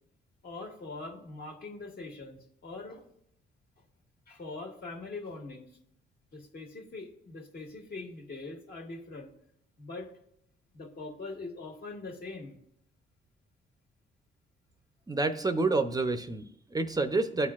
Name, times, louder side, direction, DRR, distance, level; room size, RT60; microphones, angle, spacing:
voice 1, 0.4-3.0 4.3-5.7 6.3-9.3 9.8-10.1 10.7-12.6, left 3 dB, 50° left, 1 dB, 1.6 m, -42 dB
voice 2, 15.1-17.5, right 3 dB, 20° right, 8 dB, 0.6 m, -28 dB
13.0 x 4.4 x 2.4 m, 0.74 s
cardioid pair, 90°, 20 cm